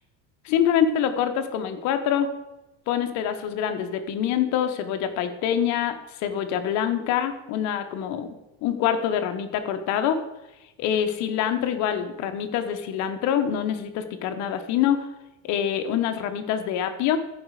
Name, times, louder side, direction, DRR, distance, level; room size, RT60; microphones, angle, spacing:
voice 1, 0.4-2.3 2.9-10.2 10.8-15.1 15.4-17.2, left 9 dB, 65° left, 7 dB, 1.3 m, -25 dB
14.0 x 5.5 x 4.9 m, 0.98 s
cardioid pair, 140°, 30 cm